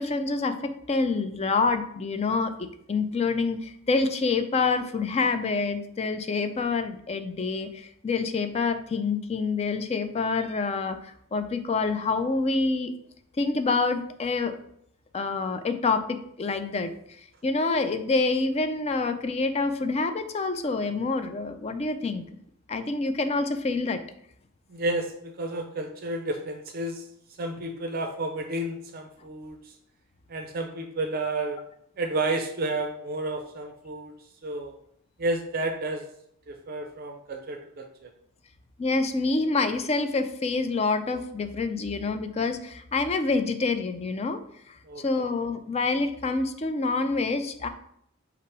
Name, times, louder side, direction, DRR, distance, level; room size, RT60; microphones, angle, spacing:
voice 1, 0.0-12.9 13.4-14.5 15.1-16.9 17.4-22.2 22.7-24.0 38.8-44.4 45.0-47.7, left 3 dB, 30° left, 8 dB, 0.4 m, -27 dB
voice 2, 24.7-27.1 27.4-29.7 30.3-31.6 32.0-34.1 34.4-34.7 35.2-36.1 36.5-38.1 44.9-45.0, right 2 dB, 45° right, 4 dB, 0.4 m, -31 dB
5.6 x 2.0 x 4.6 m, 0.70 s
head